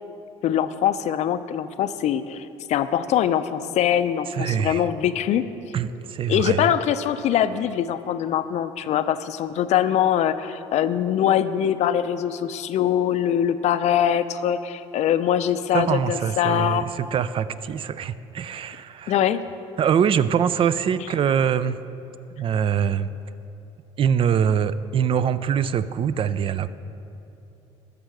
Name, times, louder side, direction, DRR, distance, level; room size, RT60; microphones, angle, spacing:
voice 1, 0.4-5.4 6.3-16.8 19.1-19.4, left 10 dB, 55° left, 12 dB, 0.5 m, -23 dB
voice 2, 4.3-4.9 5.7-6.8 15.7-19.1 19.8-21.8 22.4-23.1 24.0-26.7, right 8 dB, 40° right, 15 dB, 0.4 m, -23 dB
12.5 x 6.6 x 4.8 m, 2.8 s
supercardioid pair, 85°, 14 cm